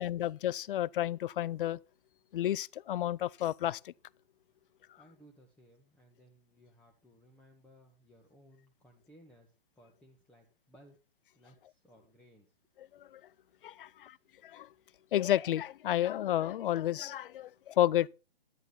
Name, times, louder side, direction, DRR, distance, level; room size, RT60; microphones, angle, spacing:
voice 1, 0.0-1.8 2.3-3.9 12.9-13.2 13.6-14.2 14.4-14.7 15.1-18.1, left 12 dB, 60° left, 0.5 m, -31 dB
voice 2, 5.0-11.0 11.3-12.6 13.0-13.1, equal, 5° left, 1.4 m, -61 dB
11.0 x 10.5 x 4.2 m
hypercardioid pair, 135°, 30 cm